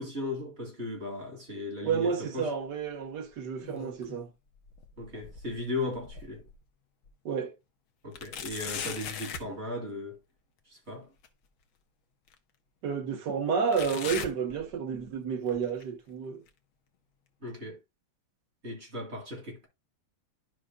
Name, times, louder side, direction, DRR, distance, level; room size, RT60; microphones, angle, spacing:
voice 1, 0.0-2.5 5.0-6.4 8.0-10.2 10.7-11.1 17.4-17.8 18.6-19.7, left 2 dB, 35° right, 3.1 m, -37 dB
voice 2, 1.8-4.3 7.2-7.5 12.8-16.4, right 6 dB, 60° right, 1.5 m, -30 dB
sound 1, 3.4-4.3 4.7-6.6 7.1-7.2 8.1-9.5 11.2-11.3 12.3-12.4 13.7-15.1 15.5-15.8 16.5-16.6 17.5-17.6, left 7 dB, 85° left, 1.8 m, -40 dB
12.5 x 5.1 x 2.2 m
omnidirectional pair, 2.2 m